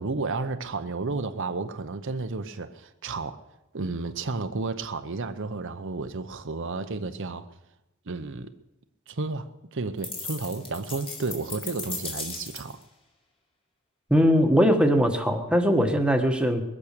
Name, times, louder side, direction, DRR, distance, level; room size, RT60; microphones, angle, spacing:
voice 1, 0.0-3.4 3.7-7.5 8.1-8.5 9.1-12.8, right 3 dB, 60° right, 0.8 m, -32 dB
sound 1, 10.0-12.8, left 4 dB, 25° left, 2.2 m, -37 dB
voice 2, 14.1-16.6, equal, 5° right, 1.3 m, -21 dB
21.5 x 8.5 x 6.7 m
head